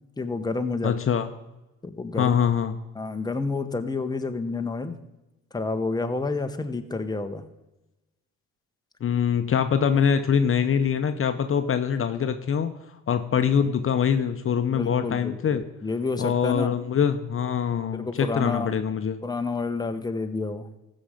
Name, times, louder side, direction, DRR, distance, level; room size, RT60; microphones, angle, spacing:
voice 1, 0.2-0.9 1.8-2.3 2.9-4.9 5.5-7.4 14.7-16.8 17.9-18.7 19.2-20.7, left 3 dB, 15° left, 6 dB, 1.0 m, -29 dB
voice 2, 0.8-1.3 2.2-2.7 9.0-12.7 13.1-15.6 16.2-19.2, left 7 dB, 45° left, 8 dB, 0.8 m, -24 dB
15.5 x 6.4 x 5.1 m, 1.0 s
cardioid pair, 90°, 30 cm